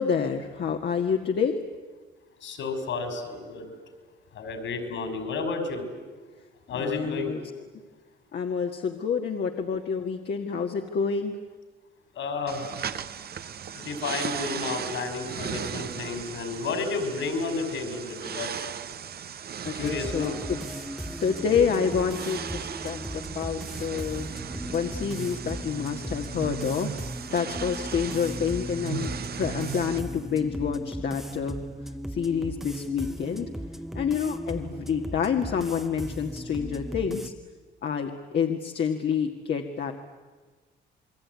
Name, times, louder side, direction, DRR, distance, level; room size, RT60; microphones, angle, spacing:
voice 1, 0.0-1.6 6.7-7.4 8.3-11.4 19.6-20.6 21.2-24.3 24.7-26.9 27.3-31.6 32.1-33.5 33.9-37.3 37.8-39.9, left 6 dB, 60° left, 3 dB, 1.9 m, -28 dB
voice 2, 2.4-3.7 4.3-5.9 6.7-7.4 12.1-12.6 13.7-18.7 19.7-20.4, left 4 dB, 75° left, 7 dB, 5.8 m, -31 dB
sound 1, 12.5-30.0, right 8 dB, 50° right, 1.0 m, -37 dB
sound 2, 19.8-37.3, equal, ahead, 1.0 m, -37 dB
28.5 x 21.5 x 9.7 m, 1.3 s
cardioid pair, 90°, 20 cm